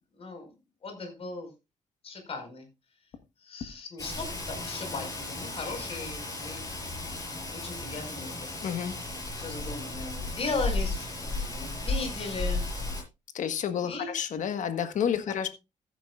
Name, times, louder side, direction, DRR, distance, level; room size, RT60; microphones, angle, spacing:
voice 1, 0.2-0.5 0.8-1.5 2.0-2.7 3.4-6.6 7.2-8.6 9.3-12.7 13.8-14.2 15.3-15.4, left 3 dB, 50° left, 5 dB, 5.1 m, -37 dB
Rain, 4.0-13.0, left 2 dB, 25° left, 7.3 m, -34 dB
voice 2, 8.6-8.9 13.3-15.5, left 8 dB, 75° left, 9 dB, 1.5 m, -30 dB
14.0 x 11.0 x 2.5 m, 0.26 s
cardioid pair, 115°, 13 cm